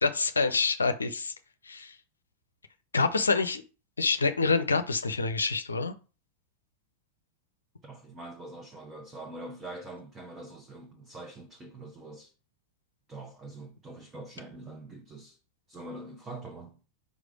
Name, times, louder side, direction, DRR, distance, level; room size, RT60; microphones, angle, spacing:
voice 1, 0.0-1.3 1.6-2.0 2.9-3.6 4.0-5.9, left 4 dB, 75° left, 0.6 m, -26 dB
voice 2, 7.8-12.3 13.1-15.4 15.7-16.8, right 2 dB, 20° right, 1.2 m, -44 dB
5.2 x 4.9 x 4.9 m
figure-of-eight pair, 90°, 0 cm